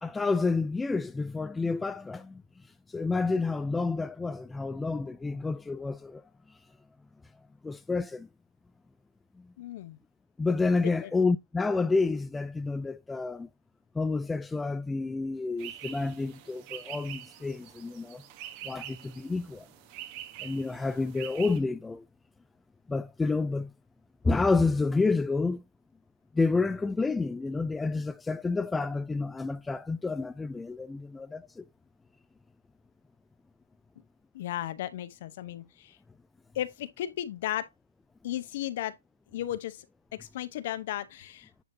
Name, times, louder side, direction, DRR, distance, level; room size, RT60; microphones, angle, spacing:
voice 1, 0.0-2.4 2.9-6.2 7.6-8.3 10.4-13.5 14.0-18.2 18.6-19.7 20.4-22.0 22.9-23.7 24.2-25.6 26.3-31.6, left 3 dB, 5° left, 0.3 m, -29 dB
voice 2, 9.6-10.0 11.0-11.1 34.3-36.0 36.5-37.7 38.2-38.9 39.3-39.9 40.2-41.5, left 12 dB, 50° left, 0.8 m, -35 dB
sound 1, 15.6-21.6, right 12 dB, 35° right, 1.0 m, -45 dB
9.5 x 4.5 x 2.7 m
hypercardioid pair, 135°, 0 cm